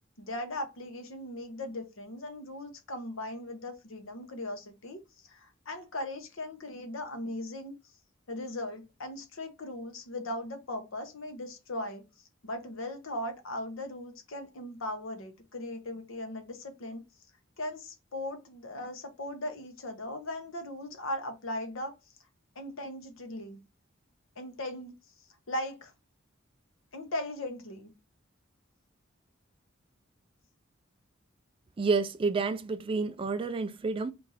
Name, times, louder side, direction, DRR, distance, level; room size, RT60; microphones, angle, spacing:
voice 1, 0.2-7.7 8.3-12.0 12.4-17.0 17.6-21.9 22.6-23.6 24.4-25.0 25.5-25.9 26.9-27.9, left 1 dB, 75° left, 0.8 m, -38 dB
voice 2, 31.8-34.1, right 4 dB, 25° right, 0.3 m, -29 dB
3.1 x 2.6 x 3.9 m
head